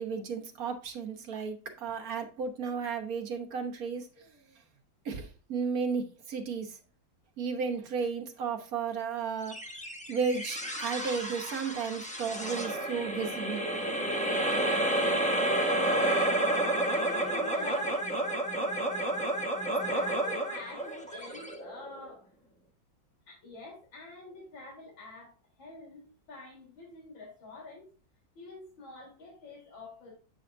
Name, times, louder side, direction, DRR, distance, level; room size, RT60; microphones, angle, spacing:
voice 1, 0.0-4.3 5.0-6.8 7.4-9.6 10.1-13.7, right 5 dB, 50° right, 1.4 m, -34 dB
sound 1, 9.5-22.1, right 1 dB, 10° left, 0.4 m, -30 dB
voice 2, 15.9-16.4 16.9-18.1 19.8-22.3 23.3-27.9 28.3-30.1, left 2 dB, 70° left, 4.2 m, -46 dB
8.3 x 6.4 x 2.6 m
omnidirectional pair, 2.2 m